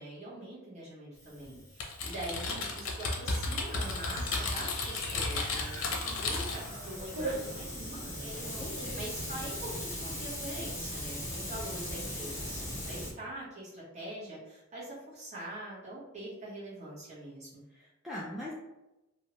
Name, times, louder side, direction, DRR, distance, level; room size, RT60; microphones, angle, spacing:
voice 1, 0.0-17.6, right 1 dB, 35° right, -8 dB, 1.2 m, -44 dB
Hiss, 1.2-13.1, left 1 dB, 15° left, 0.9 m, -41 dB
Typing, 1.8-6.7, left 3 dB, 80° left, 0.6 m, -33 dB
sound 1, 3.8-9.4, right 2 dB, 65° right, 0.9 m, -43 dB
voice 2, 8.6-9.0 17.7-18.5, left 1 dB, ahead, -7 dB, 0.3 m, -41 dB
2.6 x 2.3 x 3.0 m, 0.97 s
head